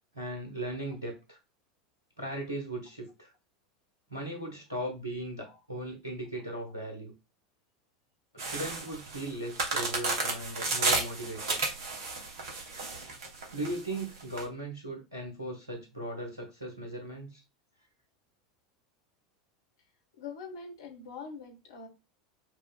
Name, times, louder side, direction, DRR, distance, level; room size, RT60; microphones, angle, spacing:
voice 1, 0.1-1.4 2.2-3.3 4.1-7.1 8.3-11.6 13.5-17.4, right 1 dB, 80° right, 1.0 m, -38 dB
sound 1, 8.4-14.4, right 3 dB, 60° right, 0.9 m, -32 dB
voice 2, 20.2-21.9, left 5 dB, 65° left, 1.2 m, -43 dB
5.9 x 2.4 x 2.3 m
figure-of-eight pair, 80°, 2 cm